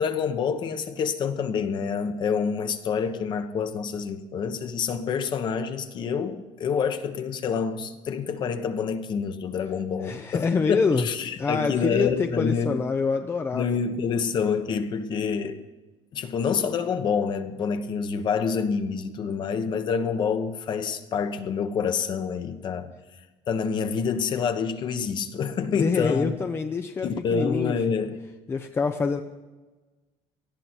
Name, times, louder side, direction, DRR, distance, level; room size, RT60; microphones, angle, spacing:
voice 1, 0.0-12.8 13.5-15.6 16.1-22.9 23.5-26.3 27.0-28.2, left 6 dB, 40° left, 1.2 m, -27 dB
voice 2, 10.0-11.1 11.4-13.8 25.8-27.8 28.5-29.2, left 4 dB, 20° left, 0.6 m, -26 dB
19.0 x 13.5 x 4.5 m
cardioid pair, 160°, 12 cm